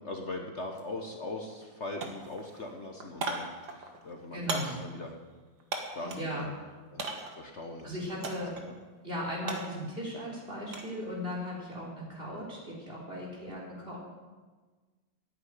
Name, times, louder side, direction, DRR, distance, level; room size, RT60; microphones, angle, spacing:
voice 1, 0.0-5.1 5.9-6.5 6.9-7.0 7.3-8.7, left 2 dB, 45° left, 3 dB, 1.1 m, -40 dB
sound 1, 0.7-0.9 1.2-1.7 2.0-6.3 7.0-7.5 8.2-8.7 9.0-11.0 11.3-11.7, right 3 dB, 60° right, 2.0 m, -39 dB
voice 2, 4.3-4.8 5.9-6.5 7.8-8.6 9.0-14.0, equal, 30° right, -4 dB, 3.9 m, -37 dB
10.0 x 9.3 x 9.6 m, 1.4 s
omnidirectional pair, 2.1 m